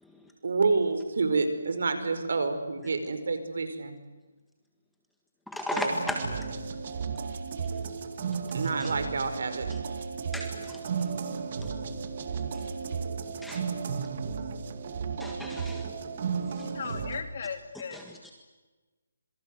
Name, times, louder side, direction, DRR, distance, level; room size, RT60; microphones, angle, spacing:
voice 1, 0.4-3.9 5.7-5.9 8.5-9.7, right 4 dB, 65° right, 9 dB, 5.1 m, -28 dB
voice 2, 5.5-6.2 8.5-8.9 9.7-9.8 10.3-13.7 14.7-14.8 15.2-16.7 17.9-18.3, left 1 dB, ahead, 1 dB, 1.7 m, -38 dB
sound 1, 5.9-17.2, right 5 dB, 40° right, 2.3 m, -34 dB
voice 3, 16.5-18.0, left 6 dB, 45° left, 8 dB, 3.0 m, -38 dB
26.5 x 23.5 x 8.0 m, 1.2 s
hypercardioid pair, 170°, 0 cm